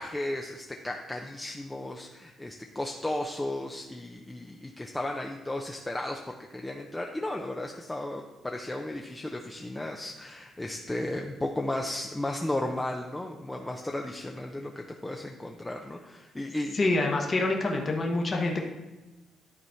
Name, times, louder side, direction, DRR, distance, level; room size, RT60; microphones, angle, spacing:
voice 1, 0.0-16.8, left 1 dB, 10° left, 1 dB, 0.7 m, -34 dB
voice 2, 16.7-18.6, left 2 dB, 35° left, 1 dB, 1.2 m, -26 dB
11.0 x 4.1 x 4.5 m, 1.1 s
cardioid pair, 90°, 0 cm